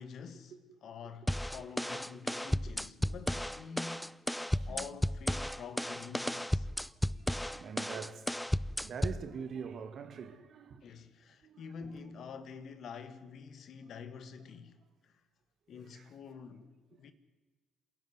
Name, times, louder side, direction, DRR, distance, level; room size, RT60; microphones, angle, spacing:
voice 1, 0.0-0.6 0.8-6.7 10.8-15.2 15.7-17.1, left 6 dB, 60° left, 1.7 m, -47 dB
sound 1, 1.3-9.3, equal, 5° left, 0.6 m, -34 dB
voice 2, 2.1-2.6 4.4-5.0 5.5-5.6 6.9-8.3 8.8-10.9 11.4-11.6 15.7-16.1 16.4-16.6 16.9-17.1, right 6 dB, 55° right, 2.1 m, -45 dB
27.0 x 11.5 x 9.7 m
hypercardioid pair, 55°, 0 cm